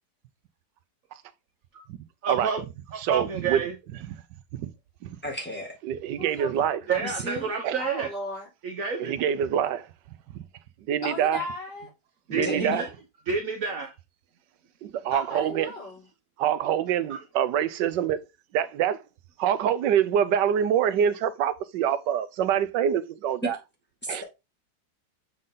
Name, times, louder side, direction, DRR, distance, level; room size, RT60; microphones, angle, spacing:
voice 1, 2.2-2.6 2.9-3.7 6.9-8.1 8.6-9.1 12.3-12.8 13.3-13.9 17.1-17.2, right 6 dB, 55° right, 1.4 m, -29 dB
voice 2, 3.0-3.6 4.1-4.2 4.6-4.7 5.0-5.2 5.8-6.8 7.6-7.8 9.0-9.9 10.3-10.4 10.9-11.4 12.3-12.9 14.8-15.7 16.4-18.2 18.5-19.0 19.4-23.6 24.1-24.2, right 9 dB, 85° right, 1.3 m, -25 dB
voice 3, 5.2-5.7 6.9-7.5 12.3-12.9 24.0-24.2, left 1 dB, 5° left, 2.1 m, -34 dB
voice 4, 6.2-6.8 7.8-8.5 11.0-11.9 15.1-16.0, left 2 dB, 80° left, 5.0 m, -36 dB
7.6 x 3.9 x 3.8 m
omnidirectional pair, 1.9 m